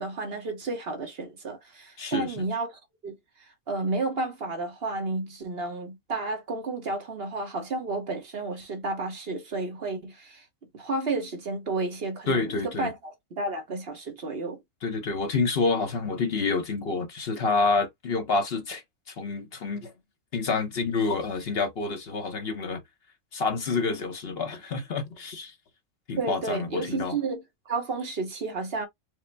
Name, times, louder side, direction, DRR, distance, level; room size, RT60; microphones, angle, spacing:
voice 1, 0.0-10.4 10.7-14.6 26.2-28.9, right 3 dB, 50° right, 1.2 m, -32 dB
voice 2, 2.0-2.4 12.3-12.9 14.8-19.9 20.3-22.8 23.3-25.5 26.1-27.2, left 4 dB, 55° left, 1.0 m, -28 dB
5.0 x 2.0 x 3.3 m
omnidirectional pair, 1.3 m